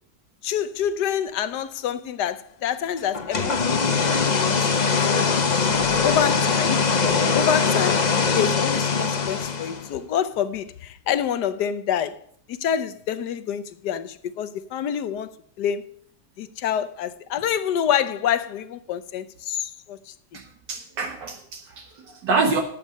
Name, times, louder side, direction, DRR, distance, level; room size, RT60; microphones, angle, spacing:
voice 1, 0.4-5.6 6.0-6.8 7.3-8.1 8.3-12.2 12.5-15.3 15.6-15.8 16.4-20.4, left 9 dB, 75° left, 1.3 m, -27 dB
sound 1, 3.1-9.9, left 5 dB, 35° left, 0.7 m, -22 dB
voice 2, 5.7-6.0 20.3-22.6, right 4 dB, 75° right, 1.9 m, -27 dB
11.5 x 8.5 x 5.1 m
omnidirectional pair, 1.9 m